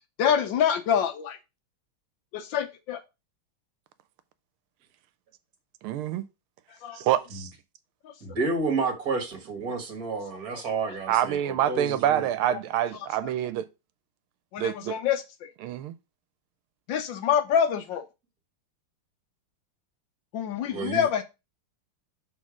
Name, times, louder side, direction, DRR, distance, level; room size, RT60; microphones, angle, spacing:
voice 1, 0.2-1.4 2.3-3.0 6.8-7.1 8.0-8.1 12.5-12.6 14.5-15.2 16.9-18.0 20.3-21.2, left 8 dB, 70° left, 1.3 m, -26 dB
voice 2, 5.8-6.2 6.9-7.5 11.1-13.7 14.6-15.0 15.6-15.9, right 11 dB, 90° right, 1.5 m, -26 dB
voice 3, 8.2-12.2 20.7-21.1, right 3 dB, 45° right, 1.8 m, -30 dB
6.4 x 3.8 x 4.8 m
omnidirectional pair, 2.3 m